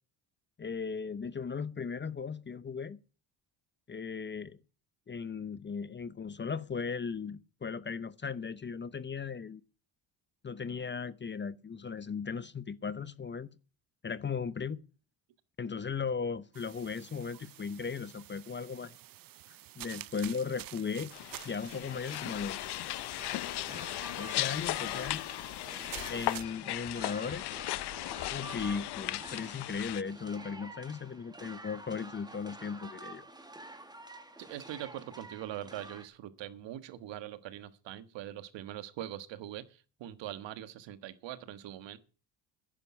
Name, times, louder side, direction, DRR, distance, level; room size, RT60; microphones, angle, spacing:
voice 1, 0.6-3.0 3.9-4.6 5.1-9.6 10.4-13.5 14.0-14.8 15.6-19.0 19.5-21.1 21.4-22.9 23.7-23.8 24.1-25.2 26.1-27.5 28.3-33.3, left 5 dB, 25° left, 0.7 m, -37 dB
sound 1, 16.5-26.4, right 14 dB, 50° right, 0.6 m, -49 dB
sound 2, 21.1-30.0, left 16 dB, 65° left, 0.6 m, -37 dB
sound 3, 23.2-36.1, right 2 dB, 10° right, 1.8 m, -49 dB
voice 2, 34.4-42.0, right 12 dB, 75° right, 1.5 m, -42 dB
11.0 x 10.0 x 7.1 m
cardioid pair, 90°, 44 cm